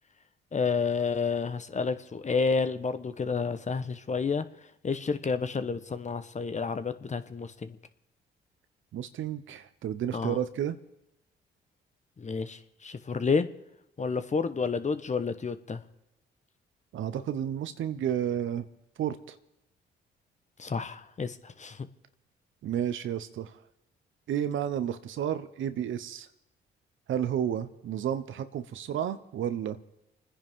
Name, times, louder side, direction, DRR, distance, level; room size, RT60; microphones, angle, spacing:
voice 1, 0.5-4.5 4.8-7.8 10.1-10.4 12.2-13.5 14.0-15.8 20.6-21.8, left 5 dB, 35° left, 1.2 m, -30 dB
voice 2, 8.9-10.8 16.9-18.6 19.0-19.3 22.6-23.6 24.3-26.3 27.1-29.8, right 10 dB, 70° right, 1.1 m, -31 dB
30.0 x 10.0 x 3.8 m
supercardioid pair, 60°, 21 cm